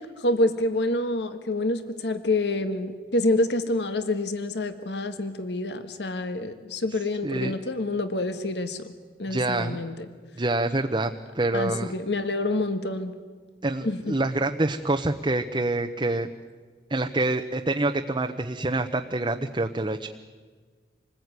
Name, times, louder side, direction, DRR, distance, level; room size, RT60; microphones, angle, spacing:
voice 1, 0.2-8.8 9.2-10.0 11.5-13.1 13.8-14.1, left 2 dB, 75° left, 9 dB, 1.6 m, -27 dB
voice 2, 7.2-7.6 9.3-9.8 10.4-11.9 13.6-16.3 16.9-20.1, right 2 dB, 25° right, 5 dB, 0.9 m, -26 dB
27.0 x 20.0 x 9.6 m, 1.5 s
head